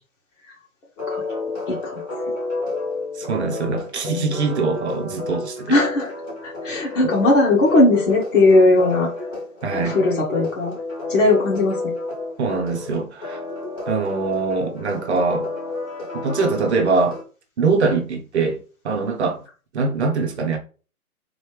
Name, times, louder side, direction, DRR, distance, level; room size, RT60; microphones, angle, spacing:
sound 1, 1.0-17.2, left 3 dB, 20° left, 1.5 m, -31 dB
voice 1, 1.7-2.0 4.1-4.4 5.7-6.1 6.4-9.1 9.8-10.7 11.1-11.9, left 2 dB, 55° left, 1.9 m, -18 dB
voice 2, 3.2-5.8 9.6-10.0 12.4-13.4 13.9-15.5 16.1-17.2 17.6-19.4 19.7-20.6, right 4 dB, 50° right, 0.8 m, -23 dB
4.0 x 3.1 x 3.3 m
hypercardioid pair, 150°, 44 cm